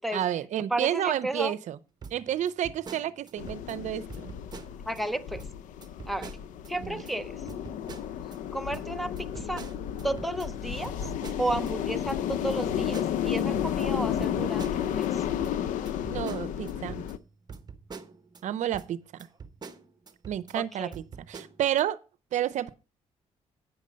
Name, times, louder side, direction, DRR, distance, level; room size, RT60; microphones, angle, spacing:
voice 1, 0.1-1.8 2.1-4.3 6.8-7.0 16.1-17.1 18.4-19.0 20.3-22.0 22.3-22.7, right 11 dB, 70° right, 0.6 m, -30 dB
voice 2, 0.7-1.5 4.8-5.5 6.1-6.4 6.7-7.5 8.5-9.7 10.0-11.1 11.4-15.2 20.5-20.9, right 1 dB, ahead, 0.7 m, -33 dB
sound 1, 2.0-3.8 4.1-5.0 5.4-5.5 5.8-7.1 7.5-8.4 8.7-11.7 12.1-15.1 15.4-18.4 18.7-18.9 19.2-20.6 20.9-21.8, right 5 dB, 30° right, 1.1 m, -45 dB
sound 2, 3.4-17.2, left 10 dB, 85° left, 0.6 m, -32 dB
9.1 x 6.6 x 5.2 m
cardioid pair, 95°, 13 cm